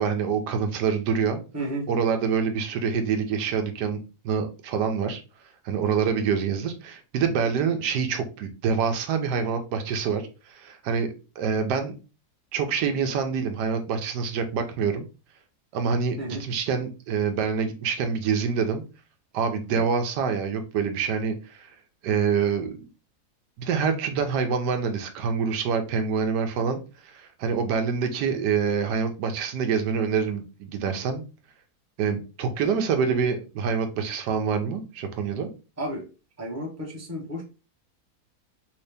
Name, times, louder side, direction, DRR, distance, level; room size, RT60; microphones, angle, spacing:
voice 1, 0.0-1.4 1.9-4.0 4.2-5.2 5.6-11.9 12.5-15.0 15.7-18.8 19.3-21.7 22.0-22.8 23.6-31.3 32.0-35.5, right 6 dB, 90° right, 6 dB, 1.3 m, -26 dB
voice 2, 1.5-1.9 16.2-16.4 19.7-19.8 32.4-32.7 35.8-36.0 36.4-37.4, right 1 dB, 10° right, -2 dB, 0.8 m, -33 dB
3.3 x 2.8 x 3.3 m, 0.32 s
omnidirectional pair, 1.7 m